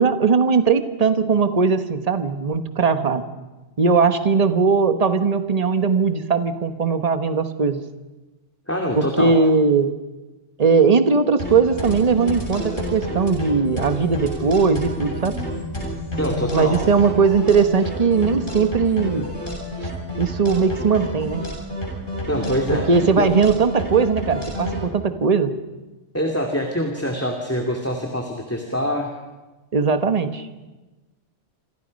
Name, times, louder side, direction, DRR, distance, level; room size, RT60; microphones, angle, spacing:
voice 1, 0.0-3.2 3.8-7.8 8.9-9.9 10.6-15.3 16.5-19.3 20.2-21.4 22.9-25.5 29.7-30.5, right 5 dB, 35° right, 8 dB, 1.3 m, -19 dB
voice 2, 8.7-9.3 16.2-16.8 22.3-22.9 23.2-23.3 26.1-29.1, equal, 10° left, 1 dB, 2.4 m, -24 dB
sound 1, 11.4-24.8, left 1 dB, 45° left, 8.0 m, -29 dB
27.0 x 27.0 x 5.3 m, 1.2 s
omnidirectional pair, 1.2 m